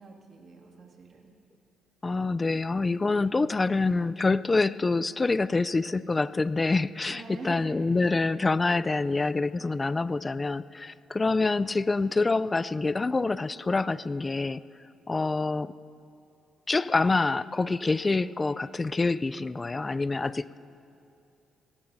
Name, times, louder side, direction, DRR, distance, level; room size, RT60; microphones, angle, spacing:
voice 1, 0.0-1.3 7.1-7.9, right 3 dB, 50° right, -1 dB, 2.2 m, -43 dB
voice 2, 2.0-14.6 15.1-15.7 16.7-20.6, left 3 dB, 25° left, 16 dB, 0.3 m, -26 dB
23.5 x 18.0 x 2.7 m, 2.6 s
cardioid pair, 90°, 0 cm